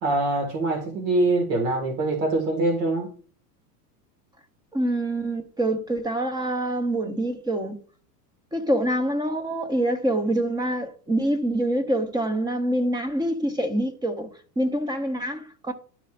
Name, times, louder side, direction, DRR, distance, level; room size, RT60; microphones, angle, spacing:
voice 1, 0.0-3.1, right 2 dB, 70° right, 1.9 m, -24 dB
voice 2, 4.7-7.8 8.5-14.3 14.6-15.7, right 1 dB, 10° right, 0.6 m, -25 dB
11.5 x 4.2 x 2.5 m
supercardioid pair, 120°, 50 cm